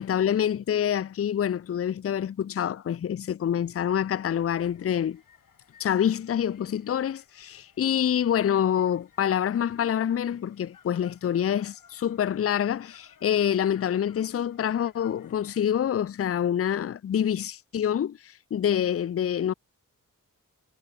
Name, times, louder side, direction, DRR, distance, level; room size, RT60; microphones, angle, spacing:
voice 1, 0.0-5.2 5.8-19.5, left 9 dB, 45° left, 0.5 m, -26 dB
sound 1, 4.6-15.8, left 7 dB, 75° left, 3.8 m, -59 dB
wide cardioid pair, 145°, 33 cm